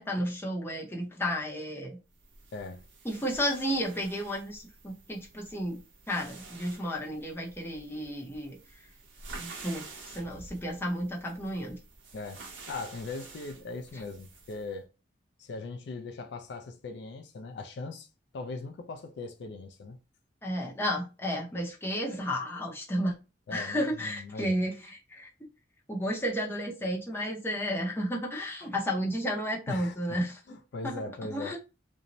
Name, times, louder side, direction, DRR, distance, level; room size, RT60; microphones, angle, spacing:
voice 1, 0.0-2.0 3.0-5.8 6.1-8.6 9.3-11.8 20.4-23.1 23.5-25.3 25.9-30.4 30.8-31.0 31.3-31.6, equal, 10° left, 0.6 m, -32 dB
sound 1, 2.2-14.7, right 3 dB, 75° right, 0.8 m, -49 dB
voice 2, 2.5-2.8 12.1-14.9 15.4-18.1 18.3-20.0 23.5-24.5 29.7-30.2 30.5-31.6, left 3 dB, 60° left, 0.3 m, -40 dB
2.6 x 2.0 x 2.9 m
head